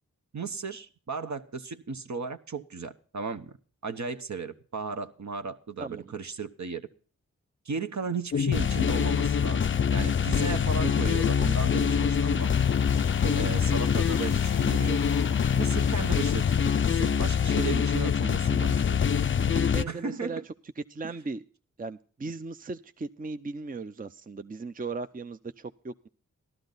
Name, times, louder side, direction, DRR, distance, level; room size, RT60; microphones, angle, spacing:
voice 1, 0.3-3.5 3.8-6.9 7.6-12.5 13.3-15.0 15.5-19.0 19.9-20.4, right 4 dB, 60° right, 8 dB, 1.1 m, -35 dB
voice 2, 5.8-6.1 11.0-11.3 13.2-13.8 19.4-20.4 20.9-21.4 21.8-26.1, right 3 dB, 25° right, 10 dB, 0.6 m, -37 dB
sound 1, 8.3-19.8, left 7 dB, 40° left, 0.5 m, -25 dB
sound 2, 12.4-17.5, left 9 dB, 85° left, 0.7 m, -40 dB
13.0 x 12.0 x 4.0 m, 0.41 s
cardioid pair, 40°, 33 cm